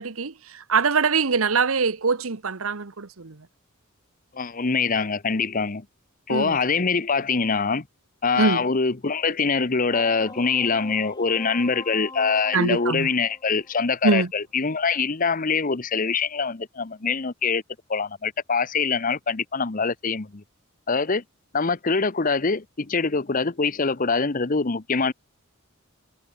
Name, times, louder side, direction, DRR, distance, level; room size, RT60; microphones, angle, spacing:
voice 1, 0.0-3.5 6.3-6.6 8.4-8.6 12.5-13.1 14.0-14.3, right 4 dB, 90° right, 1.1 m, -23 dB
voice 2, 4.3-5.8 6.3-7.8 8.2-17.6 17.9-20.4 20.9-21.2 21.5-25.1, left 4 dB, 40° left, 0.9 m, -24 dB
sound 1, 9.9-14.2, left 3 dB, 20° left, 3.9 m, -42 dB
head